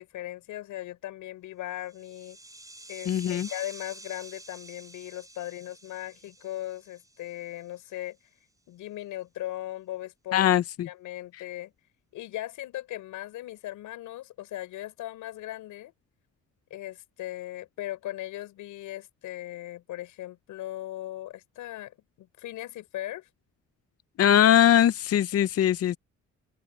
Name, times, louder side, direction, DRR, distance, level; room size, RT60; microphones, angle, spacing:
voice 1, 0.0-2.4 2.9-8.2 8.7-10.5 10.8-11.7 12.1-15.9 16.7-23.3, left 14 dB, 90° left, 5.9 m, -38 dB
sound 1, 1.8-7.9, right 1 dB, 10° right, 6.9 m, -49 dB
voice 2, 3.1-3.5 10.3-10.9 24.2-26.0, left 10 dB, 55° left, 0.6 m, -21 dB
cardioid pair, 90°, 30 cm